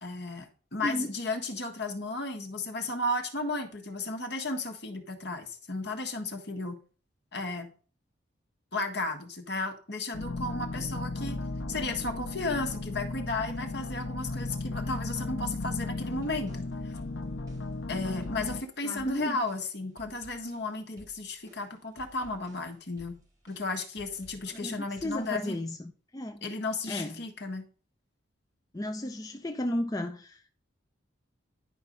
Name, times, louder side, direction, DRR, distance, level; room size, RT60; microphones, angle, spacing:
voice 1, 0.0-6.8 7.3-7.7 8.7-16.9 17.9-25.6 26.4-27.6, left 2 dB, 60° left, 1.6 m, -34 dB
sound 1, 10.1-18.6, left 2 dB, 75° left, 0.7 m, -35 dB
sound 2, 16.0-25.6, equal, 20° right, 3.1 m, -57 dB
voice 2, 18.8-19.4 24.5-26.5 26.9-27.2 28.7-30.6, left 1 dB, 20° left, 0.5 m, -34 dB
10.5 x 4.6 x 5.4 m
head